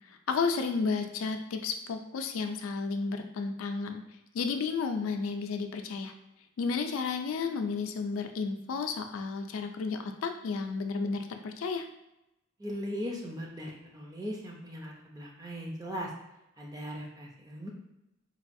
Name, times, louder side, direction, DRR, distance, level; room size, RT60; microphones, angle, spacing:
voice 1, 0.3-4.0 4.3-6.1 6.6-11.9, left 4 dB, 85° left, 6 dB, 0.4 m, -32 dB
voice 2, 12.6-16.1 16.6-17.7, equal, 20° right, -1 dB, 0.5 m, -39 dB
4.1 x 2.3 x 2.6 m, 0.91 s
head